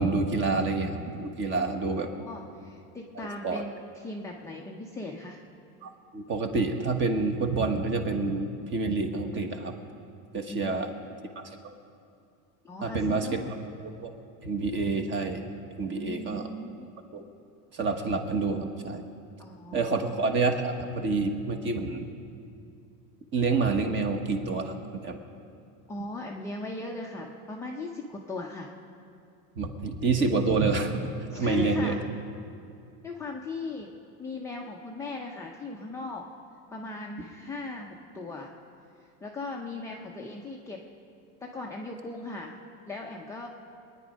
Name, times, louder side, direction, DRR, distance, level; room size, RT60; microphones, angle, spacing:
voice 1, 0.0-2.1 3.2-3.6 5.8-9.7 10.3-10.9 11.3-11.7 12.8-13.4 14.0-14.1 14.4-15.4 15.8-16.5 17.1-17.3 17.7-19.0 19.7-22.1 23.3-24.8 25.0-25.2 29.5-32.0, right 3 dB, 25° right, 5 dB, 1.3 m, -28 dB
voice 2, 1.9-5.4 10.5-10.8 12.6-13.5 16.0-16.9 19.4-20.2 25.9-28.7 31.3-32.0 33.0-33.9 34.2-36.3 36.7-38.5 39.2-40.8 41.4-42.5 42.9-43.5, left 2 dB, 5° left, -2 dB, 0.5 m, -38 dB
23.5 x 10.0 x 5.1 m, 2.5 s
supercardioid pair, 155°, 43 cm